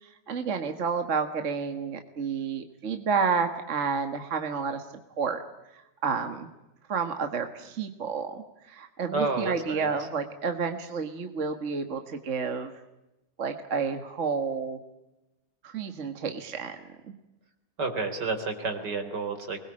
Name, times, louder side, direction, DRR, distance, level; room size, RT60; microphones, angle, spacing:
voice 1, 0.0-4.8 5.2-5.4 5.7-6.5 6.9-12.7 13.4-14.8 15.6-16.8 17.1-17.2, right 5 dB, 45° right, 7 dB, 1.8 m, -30 dB
voice 2, 9.1-9.9 17.8-19.6, right 3 dB, 75° right, 7 dB, 4.2 m, -30 dB
24.0 x 21.0 x 8.7 m, 0.95 s
omnidirectional pair, 1.9 m